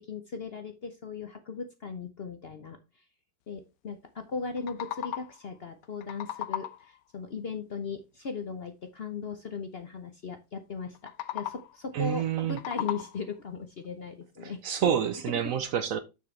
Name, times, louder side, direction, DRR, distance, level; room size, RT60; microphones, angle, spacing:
voice 1, 0.0-2.8 3.5-14.6, left 5 dB, 50° left, 0.7 m, -38 dB
sound 1, 4.4-5.5 5.8-7.0 10.9-11.8 12.3-13.4, left 12 dB, 85° left, 1.3 m, -37 dB
voice 2, 11.9-12.6 14.4-16.0, right 9 dB, 65° right, 0.9 m, -28 dB
7.0 x 6.6 x 3.2 m
omnidirectional pair, 1.8 m